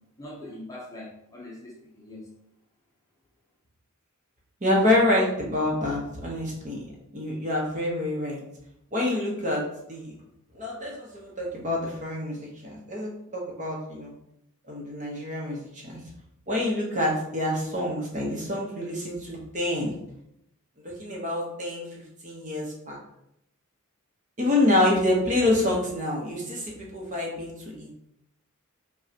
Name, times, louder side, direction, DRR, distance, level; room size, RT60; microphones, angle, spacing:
voice 1, 0.2-2.3, left 1 dB, 15° left, -3 dB, 0.7 m, -42 dB
voice 2, 4.6-6.9 7.1-8.4 8.9-9.6 9.9-10.1 10.5-14.1 14.7-16.0 16.5-19.9 20.8-21.8 22.2-23.0 24.4-27.5 27.8-27.9, left 1 dB, 35° right, -3 dB, 1.0 m, -27 dB
5.4 x 2.4 x 2.9 m, 0.78 s
head